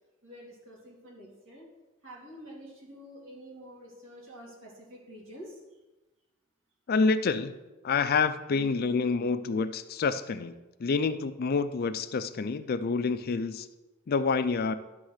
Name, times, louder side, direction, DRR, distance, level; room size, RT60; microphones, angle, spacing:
voice 1, 0.2-1.7 2.0-5.6, equal, 70° right, -3 dB, 2.6 m, -48 dB
voice 2, 6.9-7.6 7.8-10.5 10.8-13.7 14.1-14.7, left 4 dB, 45° left, 12 dB, 0.4 m, -27 dB
11.0 x 3.7 x 6.4 m, 1.1 s
head